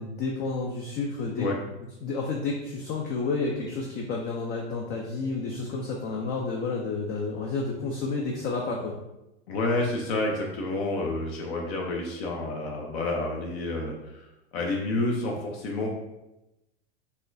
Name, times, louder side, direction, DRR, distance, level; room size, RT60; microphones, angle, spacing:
voice 1, 0.0-1.5 2.0-9.0, left 3 dB, 30° left, 0 dB, 0.4 m, -30 dB
voice 2, 9.5-15.9, left 2 dB, 60° left, 0 dB, 0.7 m, -29 dB
4.1 x 2.2 x 2.6 m, 0.94 s
hypercardioid pair, 120°, 35 cm